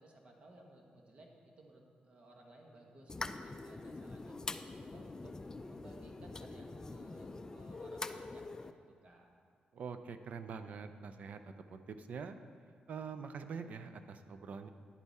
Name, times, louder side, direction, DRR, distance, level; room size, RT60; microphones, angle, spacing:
voice 1, 0.0-5.3 5.7-8.7 9.0-9.3, right 2 dB, 45° right, 1 dB, 1.6 m, -59 dB
sound 1, 3.1-8.7, left 3 dB, 25° left, 0.4 m, -44 dB
voice 2, 9.7-12.4 12.9-14.7, right 5 dB, 65° right, 9 dB, 0.6 m, -45 dB
10.5 x 8.2 x 4.3 m, 2.2 s
cardioid pair, 100°, 3 cm